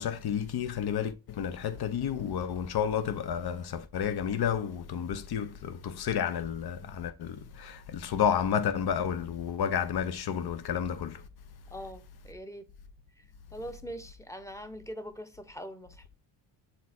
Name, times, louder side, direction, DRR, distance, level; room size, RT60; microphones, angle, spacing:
voice 1, 0.0-11.3, left 8 dB, 55° left, 1.2 m, -31 dB
voice 2, 11.7-12.7 13.2-13.3 13.5-16.0, equal, 5° left, 1.0 m, -42 dB
7.3 x 4.2 x 4.4 m
cardioid pair, 105°, 46 cm